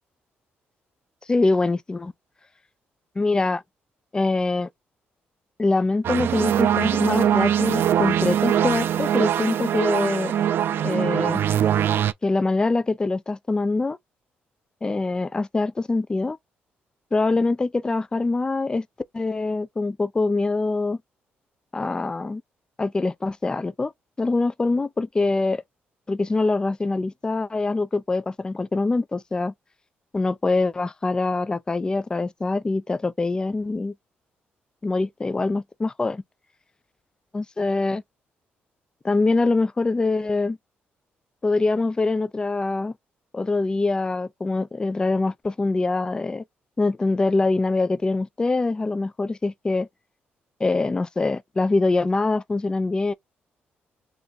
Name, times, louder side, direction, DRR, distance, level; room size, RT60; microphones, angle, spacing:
voice 1, 1.3-2.1 3.2-3.6 4.1-4.7 5.6-10.3 10.8-11.4 12.2-14.0 14.8-16.4 17.1-18.9 19.1-21.0 21.7-22.4 22.8-23.9 24.2-25.6 26.1-29.5 30.1-33.9 34.8-36.2 37.3-38.0 39.0-40.6 41.4-42.9 43.3-46.4 46.8-49.9 50.6-53.1, left 3 dB, 20° left, 0.4 m, -24 dB
sound 1, 6.0-12.1, right 10 dB, 65° right, 0.4 m, -22 dB
3.4 x 2.5 x 3.9 m
cardioid pair, 95°, 4 cm